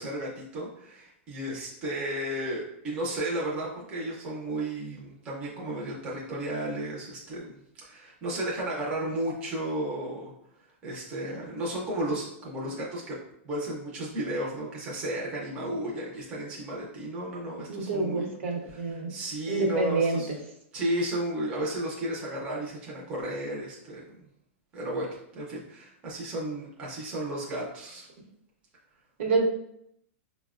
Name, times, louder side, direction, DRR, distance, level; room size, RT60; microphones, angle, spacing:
voice 1, 0.0-10.3 10.8-13.2 13.4-18.3 18.7-18.8 19.1-20.3 20.7-24.0 24.7-25.1 25.3-28.1, right 1 dB, 15° right, -4 dB, 0.5 m, -33 dB
voice 2, 17.7-19.1 19.5-20.2 29.2-29.4, right 3 dB, 70° right, 2 dB, 0.8 m, -27 dB
5.2 x 2.0 x 2.3 m, 0.75 s
supercardioid pair, 180°, 7 cm